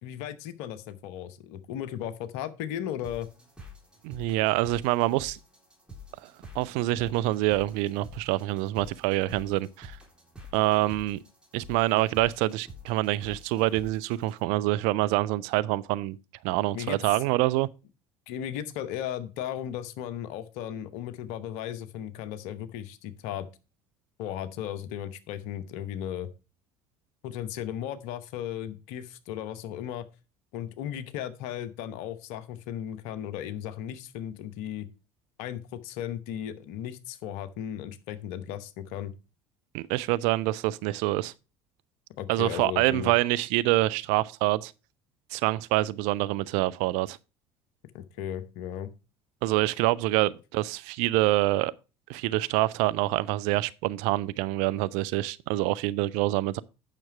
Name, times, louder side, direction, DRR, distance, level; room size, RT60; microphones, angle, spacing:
voice 1, 0.0-3.3 16.7-17.0 18.3-23.5 24.2-26.3 27.2-30.1 30.5-34.9 35.4-39.1 42.2-43.1 47.9-48.9, left 10 dB, 60° left, 0.9 m, -36 dB
sound 1, 3.0-14.4, left 1 dB, 5° right, 3.5 m, -48 dB
voice 2, 4.0-5.4 6.5-10.0 10.5-11.2 11.5-16.2 16.4-17.7 39.7-41.3 42.3-44.7 45.3-47.2 49.4-51.7 52.1-56.6, right 17 dB, 60° right, 0.5 m, -26 dB
8.8 x 6.0 x 4.7 m
figure-of-eight pair, 60°, 13 cm